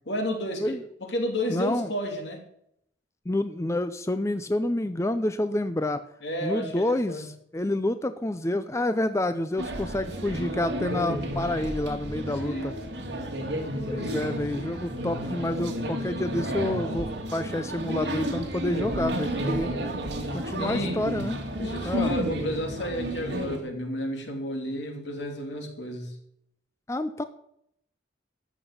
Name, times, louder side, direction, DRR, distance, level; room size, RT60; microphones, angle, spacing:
voice 1, 0.0-2.4 6.2-7.3 12.4-12.7 20.1-21.0 21.5-26.1, equal, 80° left, 3 dB, 2.8 m, -32 dB
voice 2, 1.5-1.9 3.3-6.1 6.4-12.7 13.9-19.7 20.3-21.4 21.8-22.2 26.9-27.2, left 1 dB, 15° left, 11 dB, 0.5 m, -28 dB
sound 1, 9.6-23.6, equal, 70° right, 2.3 m, -31 dB
13.5 x 6.1 x 8.6 m, 0.73 s
head